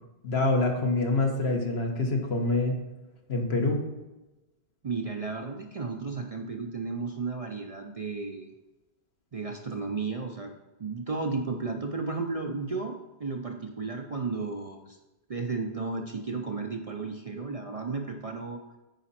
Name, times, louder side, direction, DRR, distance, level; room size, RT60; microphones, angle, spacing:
voice 1, 0.2-2.8 3.3-3.9, left 2 dB, 65° left, 2 dB, 1.5 m, -26 dB
voice 2, 4.8-8.5 9.3-10.5 10.8-15.0 15.3-18.6, right 4 dB, 45° right, 3 dB, 0.5 m, -33 dB
9.0 x 5.0 x 4.2 m, 1.0 s
omnidirectional pair, 1.1 m